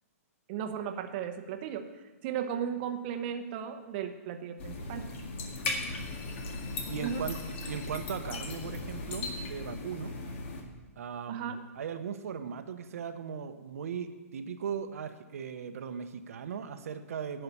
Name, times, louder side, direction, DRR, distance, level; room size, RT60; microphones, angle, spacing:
voice 1, 0.5-1.9 2.2-5.1 7.0-7.3 11.3-11.6, right 8 dB, 35° right, 6 dB, 0.8 m, -35 dB
sound 1, 4.6-10.6, left 3 dB, 50° left, 1.9 m, -37 dB
voice 2, 6.9-10.1 11.0-17.4, right 7 dB, 70° right, 8 dB, 0.8 m, -38 dB
11.0 x 5.6 x 8.5 m, 1.2 s
hypercardioid pair, 145°, 8 cm